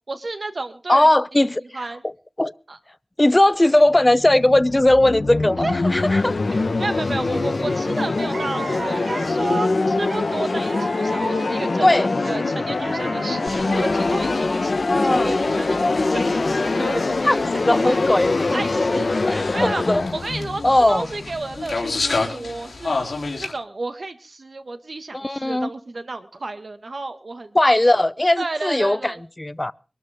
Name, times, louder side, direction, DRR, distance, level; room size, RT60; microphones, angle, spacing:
voice 1, 0.1-1.1 1.7-2.0 2.7-2.8 5.6-5.7 6.5-11.9 12.2-14.7 15.0-15.8 16.1-17.4 17.8-18.0 18.5-19.8 20.1-20.6 20.9-22.0 22.3-27.6 28.4-29.2, right 3 dB, 60° right, 1.8 m, -31 dB
voice 2, 0.9-1.6 2.0-2.1 2.4-2.5 3.2-6.4 11.8-12.1 14.9-15.3 17.2-17.4 17.7-18.6 18.9-19.0 19.3-20.0 20.6-21.1 25.1-25.7 27.5-29.7, left 1 dB, 25° left, 0.6 m, -18 dB
sound 1, 3.9-21.7, left 3 dB, 65° left, 1.2 m, -23 dB
sound 2, 7.7-7.8 8.1-9.5 10.1-11.8 12.3-14.1, right 4 dB, 90° right, 0.6 m, -36 dB
sound 3, 13.5-23.5, left 3 dB, 85° left, 3.3 m, -32 dB
23.0 x 12.5 x 3.7 m
wide cardioid pair, 60°, 0 cm